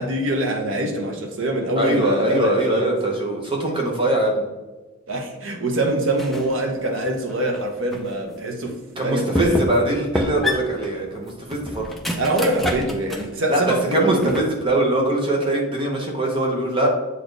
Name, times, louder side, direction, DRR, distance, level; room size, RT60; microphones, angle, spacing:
voice 1, 0.0-2.9 5.1-8.8 9.0-9.7 12.2-14.4, right 1 dB, 60° right, 1.1 m, -24 dB
voice 2, 1.8-4.4 9.0-11.8 13.5-16.9, right 1 dB, 25° right, 0.9 m, -22 dB
sound 1, 6.1-6.6 7.0-8.1 8.7-8.8 9.3-9.9 10.1-13.4 13.7-14.7, left 1 dB, ahead, 0.5 m, -28 dB
7.6 x 4.2 x 3.3 m
head